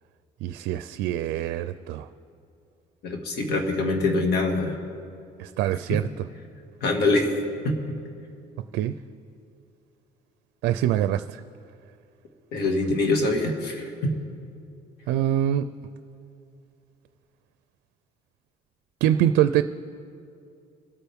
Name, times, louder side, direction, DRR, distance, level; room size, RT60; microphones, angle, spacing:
voice 1, 0.4-2.1 5.4-6.1 8.7-8.9 10.6-11.4 15.1-15.7 19.0-19.6, right 11 dB, 90° right, 12 dB, 0.4 m, -24 dB
voice 2, 3.0-4.8 5.9-6.0 6.8-7.3 7.6-7.8 12.5-14.1, left 2 dB, 75° left, 2 dB, 2.1 m, -24 dB
25.5 x 8.9 x 3.6 m, 2.5 s
cardioid pair, 110°, 17 cm